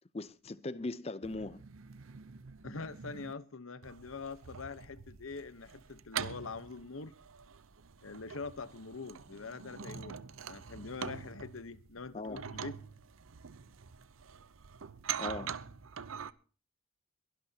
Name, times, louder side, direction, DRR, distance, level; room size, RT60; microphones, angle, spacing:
voice 1, 0.1-1.6 12.1-12.4 15.2-15.6, left 2 dB, 30° left, 0.6 m, -39 dB
sound 1, 1.2-3.3 3.8-16.3, right 7 dB, 85° right, 0.7 m, -44 dB
voice 2, 2.6-7.1 8.0-12.8, left 4 dB, 85° left, 1.0 m, -44 dB
22.5 x 12.0 x 2.8 m
head